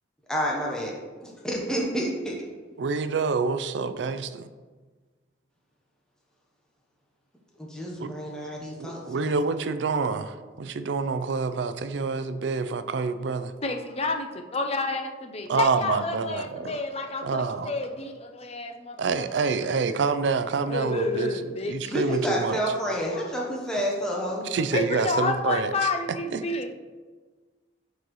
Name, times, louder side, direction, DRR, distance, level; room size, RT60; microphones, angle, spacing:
voice 1, 0.3-0.9 1.2-2.4 7.6-9.4 21.9-24.5, equal, 5° left, -3 dB, 0.9 m, -29 dB
voice 2, 2.8-4.5 8.0-8.1 8.8-13.5 15.5-16.8 17.2-17.7 19.0-21.3 21.7-22.6 24.4-25.9 26.3-26.5, right 4 dB, 70° right, 11 dB, 0.4 m, -27 dB
voice 3, 13.6-19.2 20.7-21.9 23.1-23.3 24.5-26.7, left 3 dB, 35° left, 4 dB, 0.5 m, -30 dB
9.9 x 4.0 x 3.1 m, 1.4 s
head